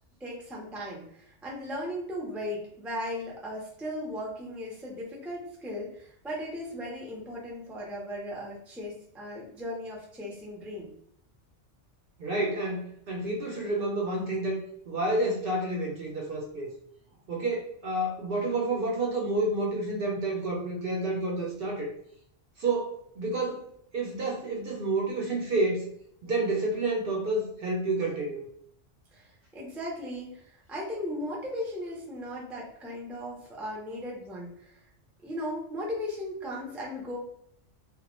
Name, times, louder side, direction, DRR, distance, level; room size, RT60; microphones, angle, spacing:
voice 1, 0.2-10.9 29.1-34.8 35.2-37.2, left 1 dB, ahead, -3 dB, 0.3 m, -37 dB
voice 2, 12.2-14.6 14.9-16.7 17.3-21.9 22.6-23.6 23.9-25.8 26.2-28.4, right 2 dB, 60° right, -1 dB, 0.6 m, -29 dB
2.2 x 2.1 x 2.9 m, 0.69 s
omnidirectional pair, 1.2 m